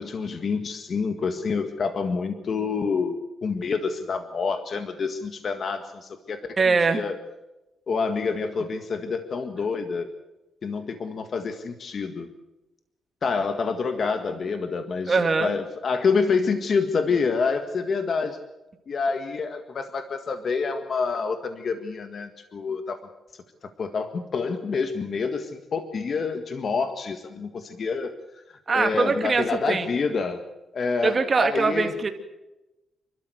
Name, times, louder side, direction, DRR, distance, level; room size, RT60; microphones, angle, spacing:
voice 1, 0.0-6.5 6.9-7.2 7.9-10.1 10.6-12.3 13.2-18.4 18.9-23.0 23.8-28.1 28.7-30.4 30.7-31.9, left 5 dB, 55° left, 7 dB, 1.7 m, -27 dB
voice 2, 6.6-7.1 15.1-15.5 28.7-29.9 31.0-32.1, right 4 dB, 35° right, 6 dB, 2.4 m, -22 dB
28.0 x 12.5 x 8.0 m, 1.0 s
cardioid pair, 100°, 0 cm